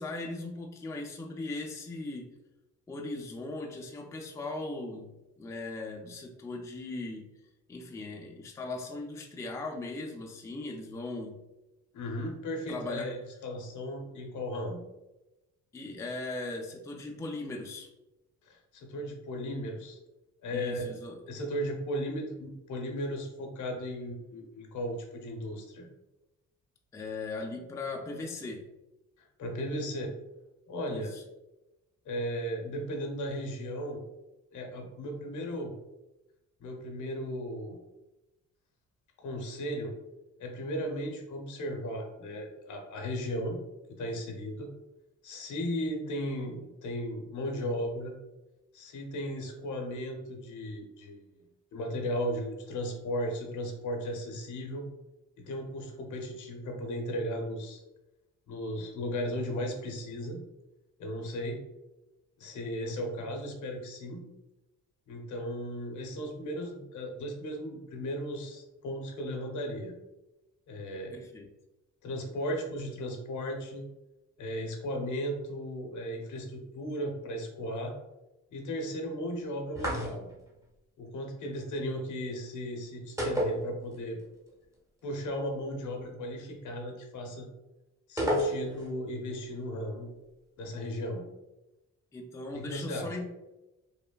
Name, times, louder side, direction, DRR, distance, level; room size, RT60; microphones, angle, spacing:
voice 1, 0.0-2.3 2.9-5.1 5.4-7.3 7.7-11.4 12.7-13.1 15.7-17.9 20.5-21.2 26.9-28.6 30.9-31.2 71.1-71.5 92.1-93.3, left 2 dB, 10° left, 2 dB, 0.3 m, -38 dB
voice 2, 11.9-14.8 18.4-20.0 20.4-20.9 21.3-25.9 29.4-30.1 30.7-31.1 32.0-34.0 34.5-35.7 36.6-37.8 39.2-39.9 40.4-43.6 44.0-44.7 45.2-48.1 48.7-51.4 51.7-54.9 55.4-57.8 58.5-60.4 61.0-61.6 62.4-64.3 65.1-69.9 70.7-71.1 72.0-73.8 74.4-77.9 78.5-80.3 81.0-84.2 85.0-87.5 88.1-90.1 90.6-91.3 92.5-93.1, equal, 70° left, 2 dB, 0.7 m, -36 dB
sound 1, 79.7-80.5 83.2-84.2 84.5-84.6 88.2-89.0, equal, 10° right, 0.8 m, -30 dB
3.1 x 2.1 x 2.2 m, 0.98 s
cardioid pair, 80°, 30 cm